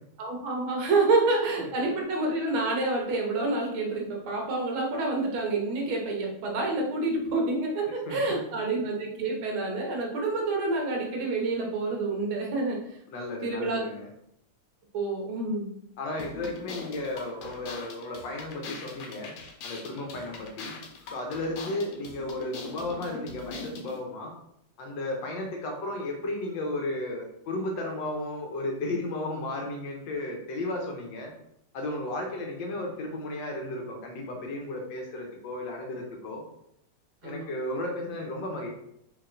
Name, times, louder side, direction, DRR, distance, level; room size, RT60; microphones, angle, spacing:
voice 1, 0.2-13.0 13.4-13.8 14.9-15.7 37.2-37.5, right 3 dB, 75° right, 0 dB, 1.6 m, -28 dB
voice 2, 7.8-8.4 13.1-14.1 16.0-19.3 19.6-20.8 21.1-24.3 24.8-31.3 31.7-36.4 37.2-38.7, left 2 dB, 70° left, 1 dB, 1.3 m, -34 dB
sound 1, 16.2-24.0, left 4 dB, 85° left, 1.6 m, -42 dB
4.7 x 3.0 x 2.5 m, 0.75 s
omnidirectional pair, 2.3 m